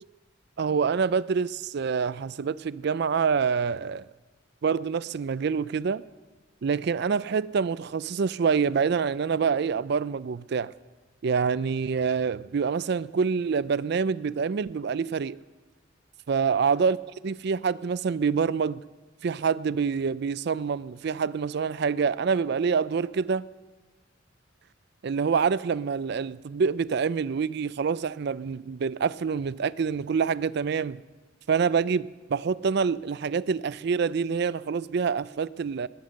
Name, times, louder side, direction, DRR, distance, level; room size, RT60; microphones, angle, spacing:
voice 1, 0.6-4.1 4.6-6.0 6.6-10.7 11.2-15.4 16.3-17.0 17.2-18.8 19.2-23.5 25.0-31.0 31.5-35.9, right 5 dB, 55° right, 0.4 m, -26 dB
19.5 x 9.6 x 6.4 m
head